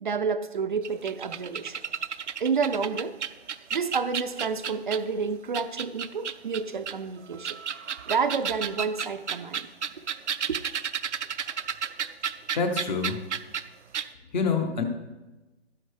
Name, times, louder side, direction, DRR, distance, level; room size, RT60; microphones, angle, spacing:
voice 1, 0.0-1.8 2.4-3.2 3.7-7.6 8.1-9.7, right 5 dB, 45° right, 9 dB, 0.5 m, -29 dB
sound 1, 0.8-5.1 5.5-6.9 7.4-13.7 13.9-14.1, right 7 dB, 90° right, 0.6 m, -32 dB
voice 2, 12.5-13.3 14.3-14.8, left 5 dB, 40° left, 6 dB, 1.2 m, -26 dB
12.5 x 9.7 x 3.3 m, 1.1 s
hypercardioid pair, 155°, 34 cm